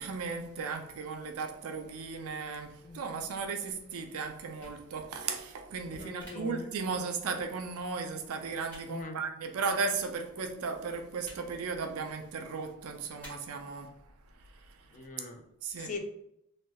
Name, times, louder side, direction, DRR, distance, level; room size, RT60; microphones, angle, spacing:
voice 1, 0.0-13.9 15.6-15.9, right 4 dB, 75° right, 5 dB, 0.4 m, -36 dB
voice 2, 2.8-3.2 5.9-6.8 8.9-9.2 14.9-15.4 15.8-16.0, left 3 dB, 35° left, 5 dB, 0.4 m, -42 dB
sound 1, 4.6-4.8 6.2-6.3 7.4-7.5 8.7-8.8 9.9-10.0 11.2-11.4 11.9-12.2 13.2-13.3, equal, 5° left, 1.4 m, -49 dB
3.3 x 2.7 x 2.2 m, 0.78 s
head